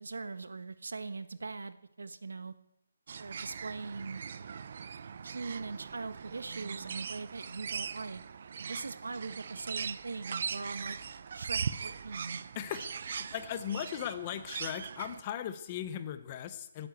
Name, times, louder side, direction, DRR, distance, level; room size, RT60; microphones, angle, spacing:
voice 1, 0.0-2.5 3.2-4.2 5.2-8.2 8.6-11.0 11.3-12.4, right 4 dB, 85° right, 12 dB, 1.4 m, -41 dB
sound 1, 3.1-15.2, right 6 dB, 35° right, 0.6 m, -40 dB
voice 2, 12.5-16.9, left 10 dB, 20° left, 12 dB, 0.8 m, -38 dB
17.0 x 9.6 x 8.0 m, 0.85 s
hypercardioid pair, 175°, 0 cm